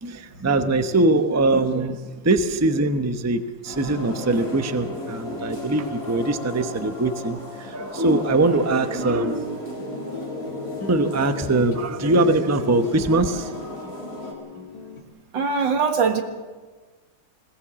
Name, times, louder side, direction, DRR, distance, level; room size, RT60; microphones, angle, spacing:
voice 1, 0.0-9.5 10.9-13.6, right 2 dB, 15° right, 8 dB, 0.6 m, -22 dB
sound 1, 3.6-14.3, equal, 35° left, 3.9 m, -34 dB
sound 2, 9.8-15.0, left 5 dB, 55° left, 2.0 m, -39 dB
voice 2, 15.3-16.2, right 5 dB, 85° right, 6 dB, 2.3 m, -21 dB
21.0 x 18.0 x 7.5 m, 1.4 s
omnidirectional pair, 2.0 m